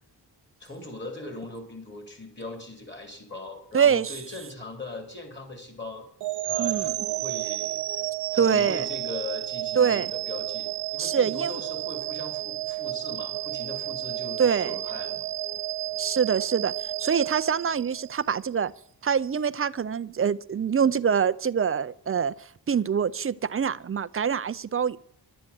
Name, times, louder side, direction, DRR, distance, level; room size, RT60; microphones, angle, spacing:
voice 1, 0.6-6.1 6.4-7.8 8.3-15.3, left 2 dB, 30° left, 3.5 m, -40 dB
voice 2, 3.7-4.1 6.6-6.9 8.4-8.9 9.8-10.1 11.0-11.6 14.4-14.8 16.0-16.7 17.0-18.7 19.0-25.0, right 7 dB, 35° right, 0.5 m, -25 dB
sound 1, 6.2-18.3, right 15 dB, 90° right, 0.5 m, -32 dB
12.0 x 9.0 x 8.2 m
wide cardioid pair, 150°, 39 cm